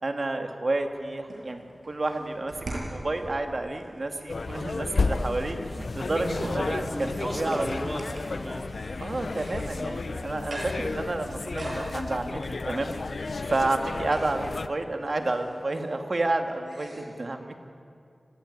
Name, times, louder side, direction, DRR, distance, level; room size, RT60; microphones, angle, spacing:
voice 1, 0.0-7.7 9.0-12.9 13.5-17.5, right 2 dB, 55° right, 5 dB, 2.2 m, -30 dB
sound 1, 0.8-17.0, right 1 dB, 70° right, 7.2 m, -43 dB
sound 2, 4.3-14.7, left 3 dB, 75° left, 0.8 m, -32 dB
voice 2, 6.9-8.7, equal, 5° right, 1 dB, 2.8 m, -34 dB
25.5 x 16.5 x 9.7 m, 2.4 s
wide cardioid pair, 65°, 0 cm